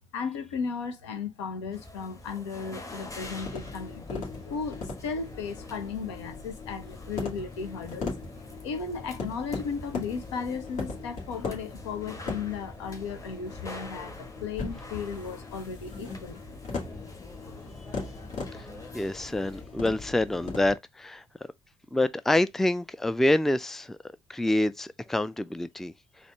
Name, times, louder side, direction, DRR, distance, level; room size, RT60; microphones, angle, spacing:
voice 1, 0.1-8.1 8.6-16.4, left 5 dB, 80° left, 0.8 m, -35 dB
sound 1, 1.7-19.6, left 2 dB, 20° left, 1.5 m, -46 dB
sound 2, 2.9-20.7, left 3 dB, 55° left, 2.0 m, -39 dB
voice 2, 18.9-21.2 21.9-24.0 24.3-25.9, left 1 dB, ahead, 0.4 m, -26 dB
4.1 x 2.5 x 4.5 m
hypercardioid pair, 55°, 14 cm